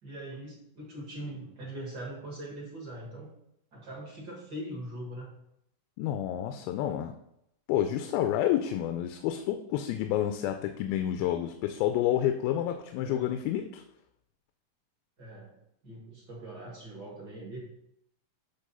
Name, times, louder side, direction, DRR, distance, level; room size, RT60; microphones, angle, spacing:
voice 1, 0.0-3.3 3.7-5.3 13.0-13.4 15.2-15.6 15.8-17.6, right 1 dB, 45° right, -3 dB, 1.4 m, -41 dB
voice 2, 6.0-7.1 7.7-13.8, left 11 dB, 85° left, 6 dB, 2.4 m, -29 dB
8.2 x 3.6 x 5.5 m, 0.76 s
omnidirectional pair, 4.2 m